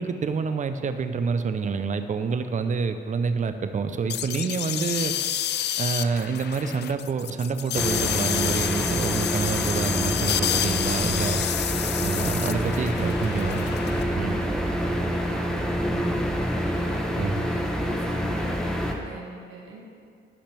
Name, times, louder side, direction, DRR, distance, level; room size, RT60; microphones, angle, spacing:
voice 1, 0.0-5.1 5.8-11.4 12.0-13.6 13.9-14.3 17.2-17.4, right 5 dB, 40° right, 9 dB, 0.7 m, -27 dB
sound 1, 4.1-14.0, left 11 dB, 60° left, 0.4 m, -29 dB
sound 2, 7.7-18.9, equal, 5° left, 1.1 m, -27 dB
voice 2, 13.6-16.2 16.6-19.8, right 3 dB, 90° right, -2 dB, 1.9 m, -42 dB
16.0 x 5.8 x 3.4 m, 2.4 s
cardioid pair, 90°, 20 cm